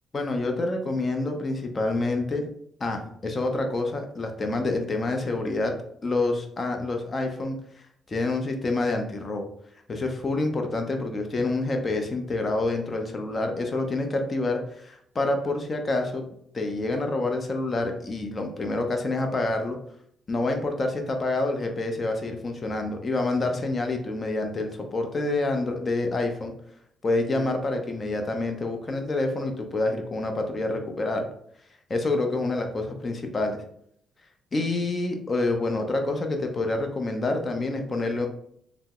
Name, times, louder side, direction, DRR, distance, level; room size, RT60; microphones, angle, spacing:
voice 1, 0.1-2.5 2.8-5.7 6.0-7.6 8.1-9.5 9.9-16.2 16.5-19.8 20.3-26.5 27.0-31.3 31.9-33.6 34.5-38.3, left 2 dB, 35° left, 4 dB, 0.6 m, -27 dB
3.3 x 2.0 x 2.9 m, 0.68 s
cardioid pair, 90°, 0 cm